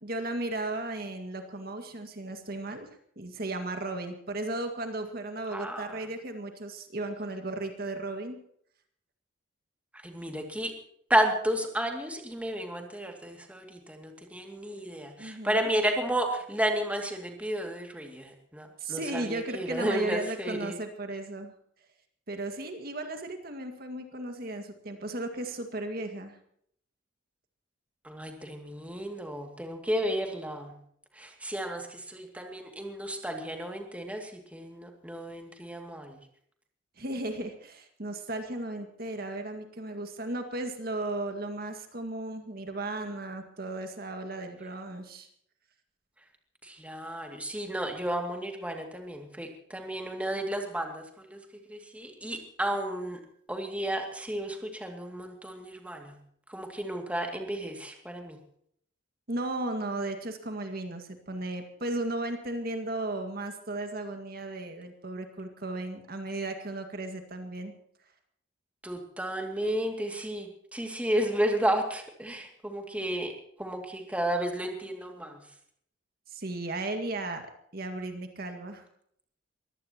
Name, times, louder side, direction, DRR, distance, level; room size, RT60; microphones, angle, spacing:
voice 1, 0.0-2.9 3.2-8.4 15.2-15.7 18.8-21.5 22.3-26.4 37.0-45.3 59.3-67.7 76.3-77.4 77.7-78.8, right 2 dB, 50° right, 5 dB, 2.0 m, -35 dB
voice 2, 5.5-6.0 9.9-10.7 11.1-20.8 28.0-30.8 31.1-36.2 46.6-51.4 51.7-53.2 53.5-56.2 56.5-58.4 68.8-73.3 73.6-75.4, right 1 dB, 5° right, 3 dB, 2.4 m, -32 dB
23.0 x 16.5 x 3.0 m, 0.66 s
head